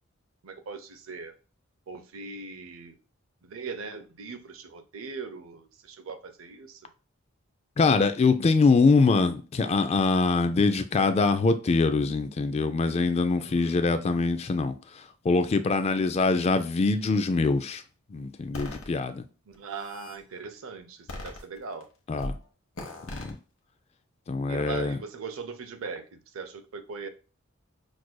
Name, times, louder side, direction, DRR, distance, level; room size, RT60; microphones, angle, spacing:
voice 1, 0.4-1.3 1.9-2.9 3.4-6.8 13.4-14.1 19.5-21.9 24.5-27.1, right 5 dB, 75° right, 0.6 m, -40 dB
voice 2, 7.8-17.8 18.1-19.2 22.1-22.3 23.1-23.4 24.3-25.0, left 4 dB, 30° left, 0.3 m, -24 dB
sound 1, 18.5-18.9 19.5-20.2 21.1-21.8 22.2-22.4 22.8-23.3, left 1 dB, 85° left, 1.0 m, -38 dB
6.0 x 2.5 x 2.2 m
head